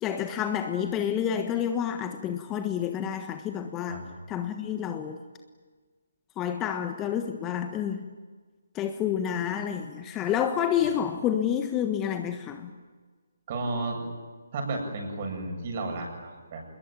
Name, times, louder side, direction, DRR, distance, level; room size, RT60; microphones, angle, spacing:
voice 1, 0.0-5.2 6.4-8.1 8.7-12.7, left 9 dB, 15° left, 7 dB, 1.4 m, -29 dB
voice 2, 13.5-14.1 14.5-16.6, right 2 dB, 40° right, 3 dB, 8.0 m, -33 dB
26.5 x 21.5 x 9.4 m, 1.5 s
figure-of-eight pair, 145°, 0 cm